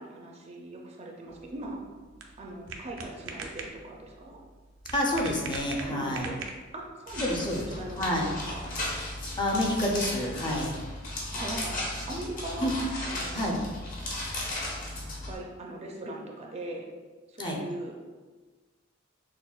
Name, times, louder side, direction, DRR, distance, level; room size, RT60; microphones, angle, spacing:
voice 1, 0.0-1.8 2.4-4.4 5.8-6.4 6.7-7.4 7.7-8.7 11.3-12.7 13.0-13.6 15.3-16.9 17.3-17.9, right 2 dB, 35° right, 0 dB, 0.4 m, -40 dB
sound 1, 1.3-6.9, right 3 dB, 90° right, 0.5 m, -42 dB
voice 2, 4.9-6.3 7.2-7.6 8.0-8.3 9.4-10.7 12.6-12.7 13.3-13.6 16.0-16.1 17.4-17.6, left 1 dB, 25° left, -1 dB, 0.5 m, -28 dB
sound 2, 7.1-15.3, left 1 dB, 45° left, 0.9 m, -35 dB
6.0 x 2.1 x 2.3 m, 1.3 s
head